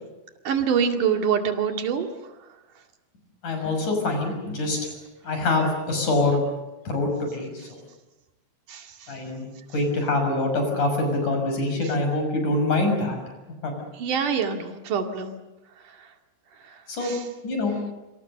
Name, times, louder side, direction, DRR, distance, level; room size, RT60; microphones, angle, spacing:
voice 1, 0.5-2.1 8.7-9.1 14.0-15.4 16.7-16.8 17.0-17.2, right 7 dB, 85° right, 5 dB, 3.8 m, -25 dB
voice 2, 3.4-4.9 5.2-6.4 6.9-7.8 9.1-13.2 13.6-13.7 16.9-17.1 17.4-17.7, left 2 dB, 75° left, 4 dB, 7.7 m, -25 dB
27.0 x 26.0 x 6.7 m, 1.1 s
omnidirectional pair, 3.5 m